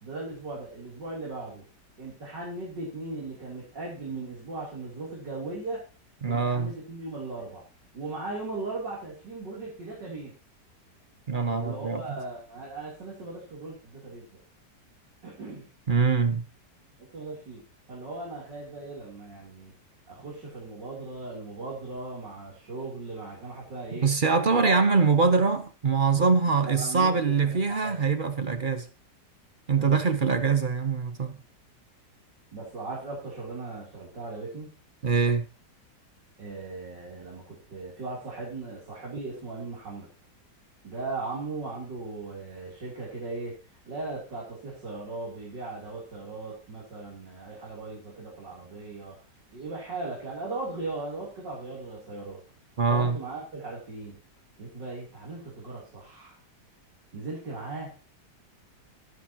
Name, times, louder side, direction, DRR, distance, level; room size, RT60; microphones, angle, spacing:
voice 1, 0.0-1.6 2.0-5.8 6.3-7.6 7.9-10.3 11.5-14.3 15.2-15.7 17.0-17.6 17.9-19.8 20.1-24.1 24.5-24.8 26.6-28.0 29.8-30.0 32.5-34.7 36.4-40.1 40.8-49.2 49.5-52.4 52.9-54.2 54.6-56.4 57.1-57.9, right 3 dB, 85° right, 4.0 m, -38 dB
voice 2, 6.2-6.7 11.3-12.0 15.9-16.4 24.0-28.9 29.7-31.4 35.0-35.5 52.8-53.2, right 5 dB, 40° right, 0.7 m, -23 dB
22.5 x 7.6 x 2.9 m
omnidirectional pair, 1.8 m